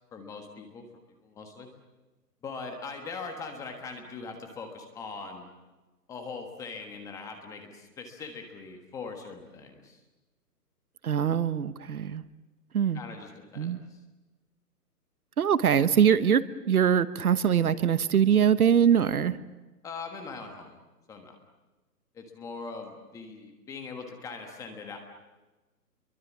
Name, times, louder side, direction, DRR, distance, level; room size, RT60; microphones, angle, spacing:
voice 1, 0.1-0.8 1.2-1.7 2.4-5.5 6.1-10.0 12.9-14.0 19.8-20.8 21.1-21.3 22.1-25.0, left 4 dB, 5° left, 4 dB, 1.4 m, -41 dB
voice 2, 11.0-12.2 12.7-13.0 13.6-13.8 15.4-19.4, right 8 dB, 60° right, 14 dB, 1.2 m, -23 dB
28.5 x 23.5 x 7.4 m, 1.1 s
hypercardioid pair, 160°, 49 cm